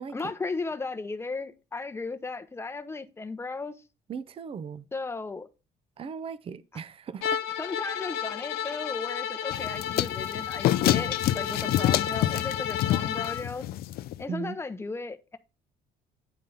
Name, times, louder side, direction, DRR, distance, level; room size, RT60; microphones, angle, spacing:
voice 1, 0.1-3.8 4.9-5.5 7.6-13.6 14.2-15.4, left 3 dB, 15° left, 0.8 m, -35 dB
voice 2, 4.1-4.9 6.0-7.5 14.3-14.6, right 6 dB, 35° right, 0.6 m, -37 dB
Bowed string instrument, 7.2-13.4, left 9 dB, 90° left, 0.8 m, -32 dB
sound 1, 9.5-14.2, left 14 dB, 65° left, 0.4 m, -27 dB
9.1 x 3.7 x 5.5 m
cardioid pair, 110°, 17 cm